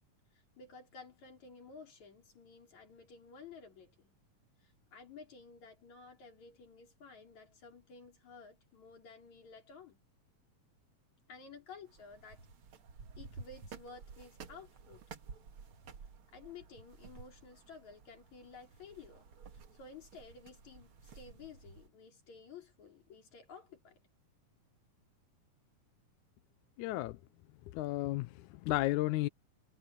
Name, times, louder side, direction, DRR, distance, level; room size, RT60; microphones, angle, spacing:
voice 1, 0.3-4.1 4.6-10.0 11.3-12.5 13.2-15.0 16.3-19.2 19.5-24.0, left 5 dB, 60° left, 5.6 m, -53 dB
sound 1, 11.9-21.9, right 5 dB, 50° right, 2.0 m, -53 dB
voice 2, 26.8-27.2 27.7-29.3, left 17 dB, 80° left, 1.9 m, -33 dB
omnidirectional pair, 3.8 m